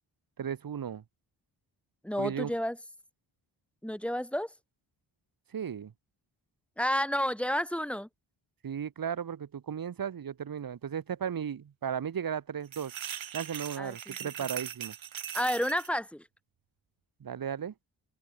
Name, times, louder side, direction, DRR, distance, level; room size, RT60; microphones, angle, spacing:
voice 1, 0.4-1.0 2.2-2.5 5.5-5.9 8.6-12.9 13.3-14.9 17.2-17.7, right 8 dB, 45° right, 1.3 m, -35 dB
voice 2, 2.0-2.8 3.8-4.5 6.8-8.1 13.8-14.3 15.3-16.2, equal, 5° left, 2.3 m, -31 dB
sound 1, 12.7-15.9, right 10 dB, 85° right, 1.9 m, -40 dB
open air
wide cardioid pair, 175°, 46 cm